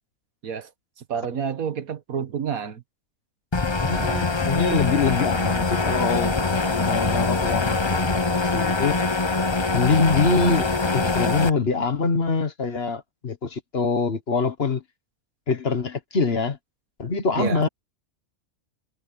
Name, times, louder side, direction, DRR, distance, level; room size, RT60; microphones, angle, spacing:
voice 1, 1.1-2.8 3.9-4.6 17.4-17.6, right 7 dB, 70° right, 1.7 m, -30 dB
sound 1, 3.5-11.5, left 3 dB, 25° left, 0.8 m, -23 dB
voice 2, 3.9-9.0 9.7-14.8 15.5-16.6 17.0-17.7, left 4 dB, 45° left, 1.5 m, -24 dB
sound 2, 4.8-11.2, right 1 dB, 40° right, 6.9 m, -49 dB
omnidirectional pair, 1.5 m